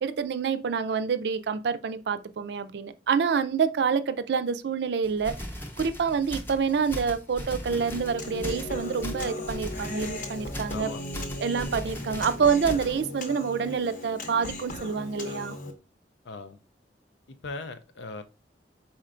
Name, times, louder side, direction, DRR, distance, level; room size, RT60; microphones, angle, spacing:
voice 1, 0.0-5.3 5.8-10.9 11.4-15.6, right 6 dB, 65° right, 0.4 m, -27 dB
sound 1, 5.0-13.0, equal, 15° left, 0.7 m, -39 dB
Human voice, 7.7-15.7, left 1 dB, 50° left, 0.7 m, -37 dB
voice 2, 10.7-11.0 16.2-16.6 17.3-18.2, left 3 dB, 80° left, 0.5 m, -39 dB
4.3 x 4.3 x 2.5 m
head